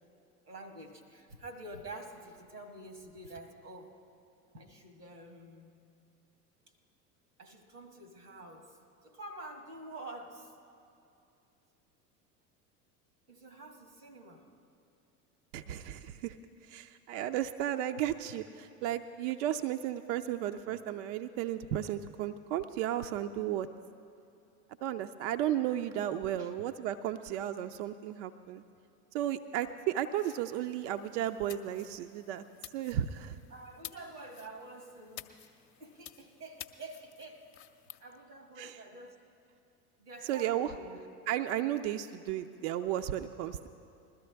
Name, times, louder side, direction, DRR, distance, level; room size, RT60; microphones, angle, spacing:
voice 1, 0.5-3.9 4.5-5.7 7.4-8.8 9.0-10.5 13.3-14.5 26.4-26.5 33.5-35.3 35.8-37.5 38.0-39.2 40.0-41.0, right 2 dB, 90° right, 6 dB, 1.6 m, -48 dB
voice 2, 15.5-16.4 16.6-23.7 24.8-28.6 29.1-32.4 32.7-33.4 38.6-38.8 40.2-40.7 41.3-43.7, right 11 dB, 55° right, 8 dB, 0.6 m, -34 dB
sound 1, 30.1-38.0, left 12 dB, 45° left, 0.8 m, -52 dB
21.0 x 13.5 x 3.4 m, 2.7 s
figure-of-eight pair, 75°, 45 cm